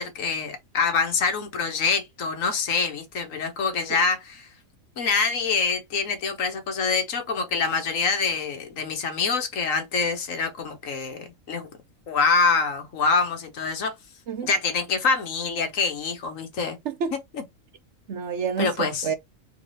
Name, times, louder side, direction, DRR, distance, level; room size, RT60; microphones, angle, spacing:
voice 1, 0.0-4.5 5.0-11.7 12.1-13.9 14.4-16.8 17.1-17.4 18.6-19.1, left 4 dB, 70° left, 1.4 m, -25 dB
voice 2, 18.1-19.1, right 6 dB, 65° right, 0.9 m, -28 dB
3.6 x 3.2 x 4.0 m
omnidirectional pair, 1.5 m